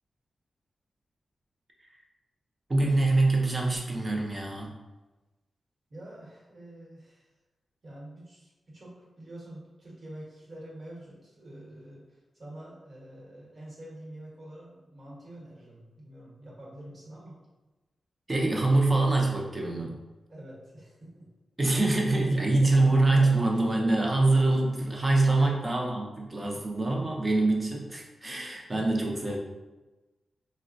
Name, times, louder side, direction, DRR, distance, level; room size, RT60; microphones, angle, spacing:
voice 1, 2.7-4.7 18.3-20.0 21.6-29.4, right 2 dB, 25° right, -1 dB, 0.5 m, -25 dB
voice 2, 5.9-7.3 7.8-17.4 20.3-21.3 22.1-23.2 23.5-23.8 25.3-25.5 26.2-26.4 28.7-28.8, right 1 dB, 45° right, -5 dB, 1.0 m, -47 dB
4.0 x 2.0 x 2.5 m, 1.1 s
wide cardioid pair, 145°, 0 cm